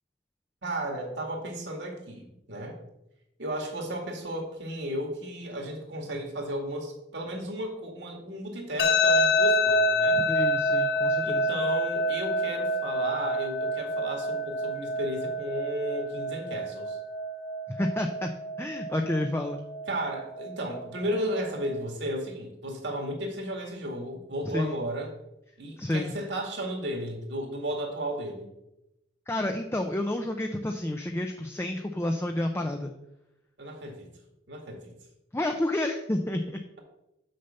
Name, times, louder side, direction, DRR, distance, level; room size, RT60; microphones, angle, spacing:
voice 1, 0.6-2.8 3.4-10.2 11.2-17.0 19.9-25.1 25.6-28.5 33.6-34.1 34.5-34.9, right 1 dB, 65° right, 2 dB, 2.0 m, -34 dB
sound 1, 8.8-21.8, left 1 dB, 60° left, 1.0 m, -28 dB
voice 2, 10.3-11.5 17.7-18.3 18.6-19.6 24.5-24.8 25.8-26.2 29.3-32.9 35.3-36.6, left 1 dB, 15° left, 4 dB, 0.5 m, -30 dB
6.6 x 5.7 x 6.7 m, 0.88 s
head